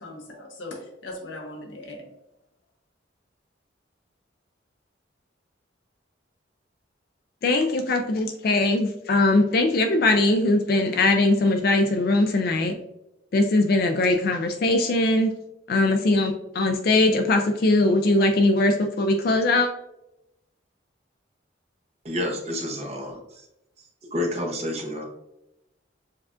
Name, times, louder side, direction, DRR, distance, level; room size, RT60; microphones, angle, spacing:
voice 1, 0.0-2.1, left 1 dB, 85° left, 0 dB, 0.9 m, -39 dB
voice 2, 7.4-12.7 13.3-15.4 15.7-19.7, left 2 dB, 55° left, 5 dB, 0.4 m, -21 dB
voice 3, 22.0-23.4 24.1-25.0, left 1 dB, 35° right, 0 dB, 0.8 m, -29 dB
7.1 x 2.4 x 2.4 m, 0.88 s
head